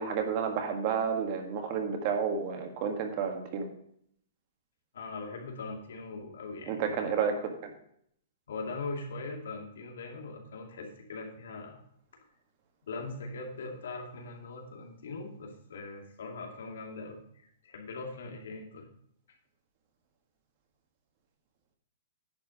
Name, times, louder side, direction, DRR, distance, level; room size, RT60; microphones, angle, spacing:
voice 1, 0.0-3.7 6.7-7.7, right 6 dB, 35° right, 4 dB, 1.7 m, -31 dB
voice 2, 4.9-7.0 8.5-11.8 12.8-18.9 19.3-19.4, left 3 dB, 80° left, 2 dB, 2.4 m, -41 dB
10.5 x 4.7 x 6.3 m, 0.67 s
hypercardioid pair, 160°, 0 cm